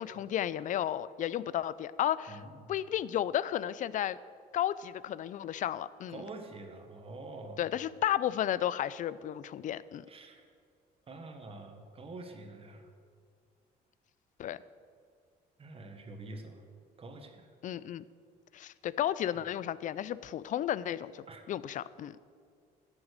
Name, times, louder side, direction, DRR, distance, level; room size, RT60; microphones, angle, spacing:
voice 1, 0.0-2.4 2.7-4.2 4.5-6.2 7.6-10.1 14.4-14.6 17.6-18.0 18.5-22.2, left 11 dB, 50° left, 18 dB, 0.4 m, -33 dB
voice 2, 2.3-2.6 6.1-7.7 10.1-10.4 11.1-12.9 15.6-16.6 17.0-17.5 19.3-19.4 21.3-21.4, right 2 dB, 35° right, 5 dB, 1.4 m, -46 dB
11.0 x 7.3 x 6.6 m, 2.2 s
cardioid pair, 110°, 17 cm